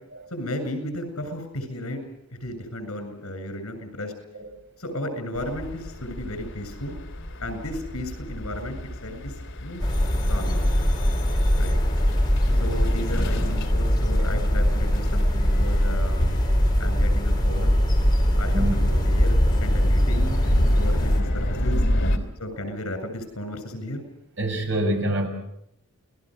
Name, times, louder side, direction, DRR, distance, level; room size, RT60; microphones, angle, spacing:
voice 1, 0.3-2.0 2.3-4.1 4.8-7.0 7.4-9.8 10.3-10.6 11.6-11.7 12.6-16.2 16.8-17.8 18.3-20.4 20.8-21.8 22.4-24.0, left 1 dB, 75° left, 9 dB, 7.6 m, -34 dB
sound 1, 5.3-22.2, left 1 dB, 55° left, 3.1 m, -30 dB
sound 2, 9.8-21.2, equal, 20° left, 3.8 m, -22 dB
voice 2, 24.4-25.3, right 1 dB, 55° right, 3 dB, 6.4 m, -26 dB
29.5 x 20.0 x 6.5 m, 0.77 s
head